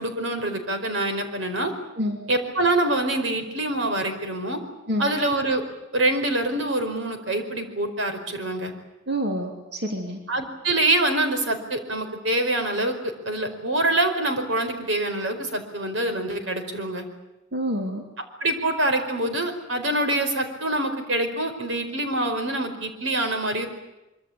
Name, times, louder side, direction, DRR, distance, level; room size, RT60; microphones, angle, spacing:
voice 1, 0.0-1.7 2.3-4.6 5.0-5.6 5.9-8.7 10.3-17.0 18.4-23.7, right 1 dB, 80° right, 6 dB, 4.8 m, -25 dB
voice 2, 9.1-10.2 17.5-18.0, equal, 60° right, 2 dB, 3.3 m, -27 dB
25.0 x 24.5 x 8.7 m, 0.98 s
head